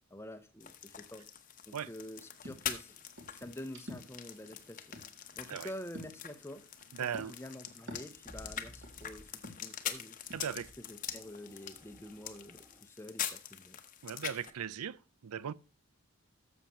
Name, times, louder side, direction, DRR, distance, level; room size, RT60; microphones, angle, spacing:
voice 1, 0.1-1.3 1.7-3.0 3.3-5.0 5.4-6.7 7.2-10.2 10.8-13.8, left 1 dB, 10° left, 0.7 m, -47 dB
sound 1, 0.6-14.5, left 9 dB, 35° left, 0.9 m, -44 dB
sound 2, 2.0-10.7, left 1 dB, 55° right, 2.7 m, -53 dB
voice 2, 6.9-7.4 10.3-10.7 14.0-15.5, right 8 dB, 85° right, 0.5 m, -38 dB
sound 3, 8.1-9.4 10.2-12.9, equal, 15° right, 1.8 m, -57 dB
12.5 x 7.3 x 3.0 m
head